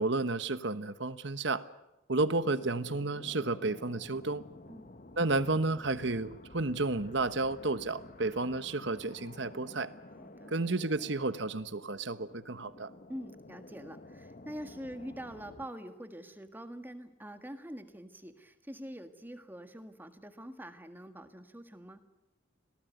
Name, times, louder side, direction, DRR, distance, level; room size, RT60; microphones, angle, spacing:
voice 1, 0.0-1.6 2.1-4.4 5.2-9.9 10.5-12.9, right 2 dB, 65° right, 13 dB, 1.2 m, -32 dB
sound 1, 2.2-15.7, left 2 dB, 40° left, 1.0 m, -51 dB
voice 2, 10.2-10.5 13.1-22.0, equal, 10° right, 8 dB, 1.6 m, -45 dB
26.5 x 18.5 x 9.4 m, 0.95 s
head